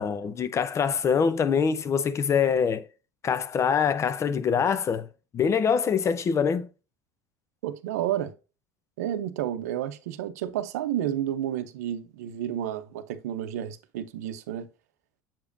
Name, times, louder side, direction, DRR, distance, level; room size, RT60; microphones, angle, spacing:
voice 1, 0.0-2.9 3.2-5.1 5.3-6.7, left 6 dB, 35° left, 0.7 m, -24 dB
voice 2, 7.6-8.3 9.0-14.7, right 11 dB, 90° right, 0.6 m, -31 dB
7.4 x 4.9 x 2.6 m
supercardioid pair, 95°, 9 cm